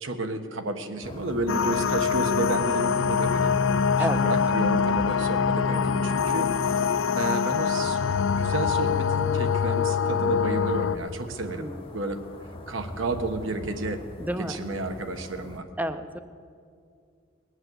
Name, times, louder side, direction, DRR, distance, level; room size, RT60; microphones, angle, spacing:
voice 1, 0.0-3.5 4.0-6.8 7.1-8.1 8.4-12.2 12.7-14.0 14.4-15.7, right 2 dB, 80° right, 6 dB, 1.2 m, -31 dB
sound 1, 1.0-15.6, left 1 dB, 25° left, 0.8 m, -42 dB
sound 2, 1.5-11.0, left 6 dB, 70° left, 0.4 m, -24 dB
voice 2, 11.6-11.9 14.2-14.6 15.8-16.2, equal, 10° right, 10 dB, 0.6 m, -31 dB
20.5 x 8.1 x 7.9 m, 2.3 s
head